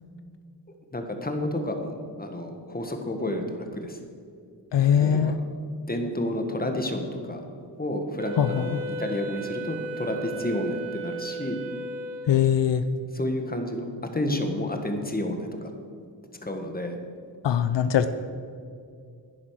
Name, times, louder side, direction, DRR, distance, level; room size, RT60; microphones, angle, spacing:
voice 1, 0.9-4.0 5.0-5.3 5.9-7.4 7.8-11.6 13.1-13.9 14.1-15.7 16.4-17.0, left 1 dB, 20° left, 5 dB, 1.5 m, -30 dB
voice 2, 4.7-5.4 8.4-8.8 12.3-12.8 17.4-18.1, left 9 dB, 80° left, 10 dB, 0.6 m, -21 dB
Wind instrument woodwind instrument, 8.2-12.7, right 2 dB, 50° right, 1.5 m, -35 dB
10.5 x 9.9 x 6.4 m, 2.3 s
wide cardioid pair, 95°, 42 cm